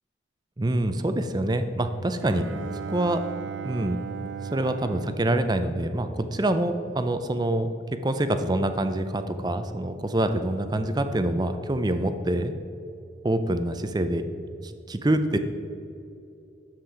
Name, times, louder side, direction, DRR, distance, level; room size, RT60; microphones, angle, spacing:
voice 1, 0.6-2.4 2.9-3.2 3.6-4.0 4.5-7.7 8.0-12.5 13.2-14.3 14.6-15.4, right 1 dB, 20° right, 9 dB, 0.5 m, -26 dB
Bowed string instrument, 2.2-6.6, right 7 dB, 75° right, 0.5 m, -38 dB
10.5 x 7.5 x 4.9 m, 2.7 s
head